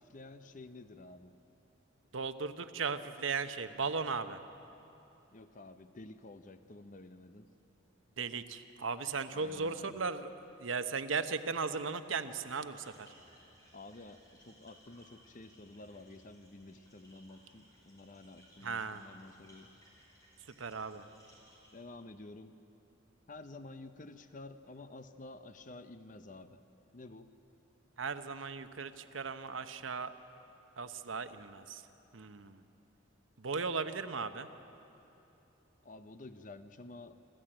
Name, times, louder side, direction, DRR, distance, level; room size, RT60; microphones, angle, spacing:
voice 1, 0.0-1.3 5.3-7.5 9.3-10.0 13.7-19.7 21.7-22.6 23.3-26.6 26.9-27.3 35.8-37.2, left 2 dB, 40° left, 10 dB, 0.7 m, -51 dB
voice 2, 2.1-4.4 8.2-10.3 10.6-13.1 18.6-19.0 20.6-21.0 28.0-30.1 30.8-31.8 32.1-32.6 33.4-34.5, right 5 dB, 80° right, 10 dB, 0.9 m, -37 dB
sound 1, 12.7-21.8, equal, 20° left, 4.9 m, -63 dB
27.0 x 13.5 x 8.9 m, 3.0 s
head